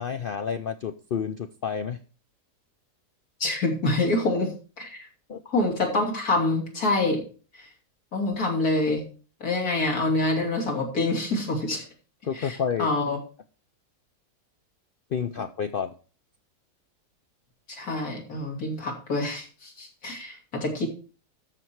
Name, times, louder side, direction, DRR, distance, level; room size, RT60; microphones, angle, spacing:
voice 1, 0.0-2.0 5.3-5.4 12.2-12.9 15.1-15.9, left 7 dB, 85° left, 9 dB, 0.4 m, -30 dB
voice 2, 3.4-4.5 4.8-5.1 5.4-7.2 8.1-9.0 9.4-11.8 12.4-13.2 17.7-20.9, left 2 dB, 65° left, 1 dB, 3.3 m, -26 dB
13.5 x 6.0 x 4.5 m, 0.37 s
omnidirectional pair, 1.7 m